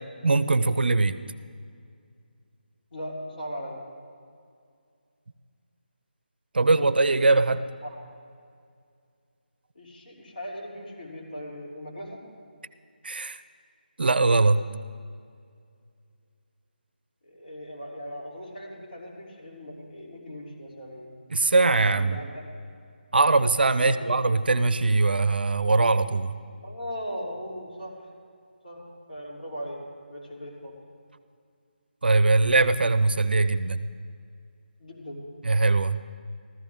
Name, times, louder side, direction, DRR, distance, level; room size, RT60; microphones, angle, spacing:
voice 1, 0.2-1.2 6.5-7.6 13.0-13.4 14.0-14.6 21.3-22.2 23.1-26.3 32.0-33.9 35.4-36.0, right 3 dB, 70° right, 14 dB, 0.5 m, -21 dB
voice 2, 2.9-3.8 7.8-8.0 9.7-12.2 17.2-21.1 21.6-22.5 23.8-24.1 26.6-28.0 28.6-29.8 30.1-30.8 34.8-35.3, equal, 55° left, -4 dB, 3.2 m, -38 dB
14.5 x 13.5 x 3.6 m, 2.2 s
figure-of-eight pair, 160°, 6 cm